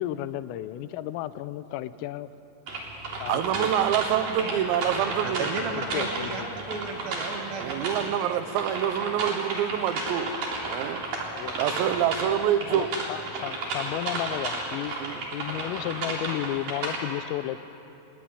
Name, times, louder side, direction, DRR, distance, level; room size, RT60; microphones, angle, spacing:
voice 1, 0.0-2.3 3.2-3.7 5.7-6.5 11.3-11.6 12.3-12.4 12.7-15.0 15.3-17.6, left 14 dB, 85° left, 14 dB, 3.4 m, -33 dB
sound 1, 2.7-17.0, right 2 dB, 45° right, 4.7 m, -33 dB
voice 2, 3.3-5.5 7.6-10.3 10.7-11.0 11.6-12.9 15.0-15.2, right 10 dB, 90° right, 10 dB, 3.9 m, -26 dB
voice 3, 5.2-8.4, right 4 dB, 65° right, 4 dB, 2.6 m, -34 dB
26.5 x 20.5 x 9.8 m, 2.8 s
omnidirectional pair, 5.9 m